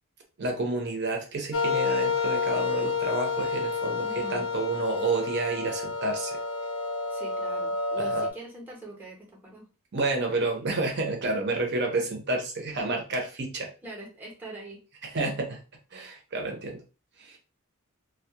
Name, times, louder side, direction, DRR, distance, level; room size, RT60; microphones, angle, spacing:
voice 1, 0.4-6.4 8.0-8.2 9.9-13.7 15.1-15.6 15.9-16.8 17.2-17.4, right 2 dB, 55° right, 2 dB, 0.7 m, -30 dB
sound 1, 1.5-8.3, left 4 dB, 80° left, 0.4 m, -29 dB
voice 2, 4.0-4.4 7.1-9.7 10.3-10.5 13.8-14.8, right 1 dB, 10° right, -3 dB, 0.7 m, -43 dB
2.2 x 2.1 x 2.8 m, 0.33 s
head